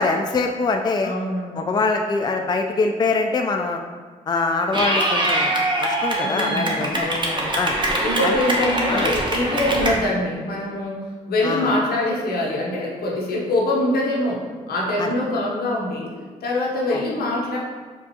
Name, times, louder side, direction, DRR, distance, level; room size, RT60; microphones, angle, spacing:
voice 1, 0.0-1.1 1.6-3.8 4.3-7.1 7.5-7.8 8.2-8.4 8.9-9.1 11.4-11.7 15.0-15.1 16.9-17.0, left 3 dB, 25° left, 4 dB, 0.3 m, -23 dB
voice 2, 1.0-1.7 6.2-7.5 8.0-16.1 16.4-17.6, left 1 dB, 80° left, -3 dB, 0.8 m, -24 dB
Clapping / Cheering, 4.7-9.9, right 1 dB, 30° right, 0.8 m, -23 dB
4.4 x 2.3 x 2.8 m, 1.5 s
supercardioid pair, 45°, 16 cm